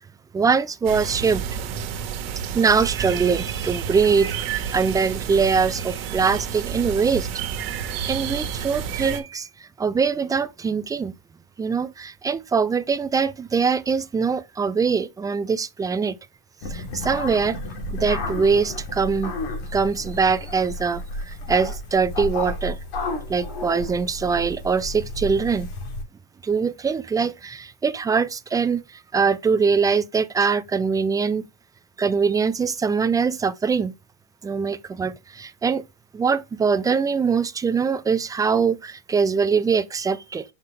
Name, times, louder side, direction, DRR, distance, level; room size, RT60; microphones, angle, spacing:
voice 1, 0.3-1.4 2.5-7.3 8.1-9.5 9.8-11.1 11.6-16.1 16.7-17.6 17.9-19.3 19.7-22.8 23.3-25.7 26.4-28.8 29.1-31.5 32.0-33.9 34.4-35.8 36.1-40.4, right 5 dB, 15° right, 0.3 m, -22 dB
sound 1, 0.8-9.2, right 7 dB, 80° right, 1.4 m, -30 dB
sound 2, 16.6-26.0, left 2 dB, 90° left, 3.1 m, -32 dB
5.6 x 5.6 x 3.3 m
supercardioid pair, 140°, 29 cm